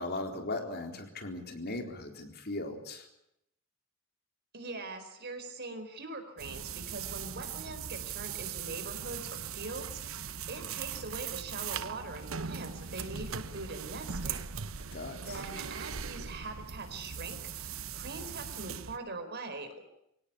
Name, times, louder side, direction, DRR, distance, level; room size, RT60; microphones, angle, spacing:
voice 1, 0.0-3.1 14.9-15.4, left 2 dB, 50° left, 4 dB, 4.0 m, -38 dB
voice 2, 4.5-10.2 10.5-14.5 15.3-19.8, right 3 dB, 50° right, 8 dB, 4.5 m, -42 dB
sound 1, 6.4-19.0, right 7 dB, 75° right, 1.0 m, -40 dB
25.5 x 17.5 x 8.5 m, 0.78 s
head